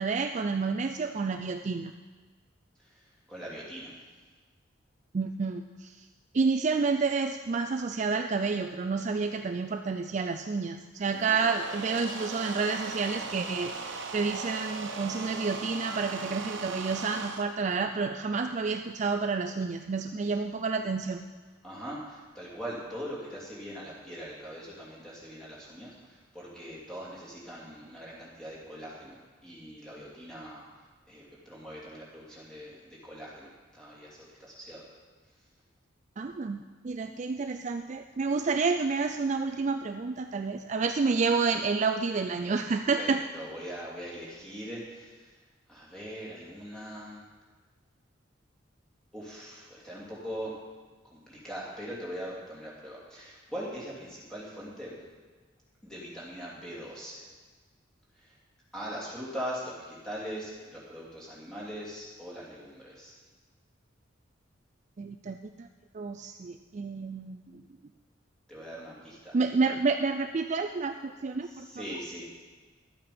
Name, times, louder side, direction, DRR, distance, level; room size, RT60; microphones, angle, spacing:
voice 1, 0.0-1.9 5.1-5.9 6.3-21.2 36.2-43.2 65.0-65.7 65.9-67.6 69.3-71.7 71.9-72.0, right 4 dB, 40° right, 6 dB, 0.4 m, -29 dB
voice 2, 3.3-4.0 21.6-30.6 31.1-34.8 42.4-42.5 43.0-45.3 45.7-47.2 49.1-50.6 51.1-55.0 55.8-57.3 58.2-58.3 58.7-63.1 68.5-69.4 71.4-72.3, equal, 5° left, -7 dB, 2.9 m, -41 dB
sound 1, 11.0-17.4, right 4 dB, 70° right, 1.1 m, -38 dB
12.0 x 8.6 x 5.1 m, 1.4 s
head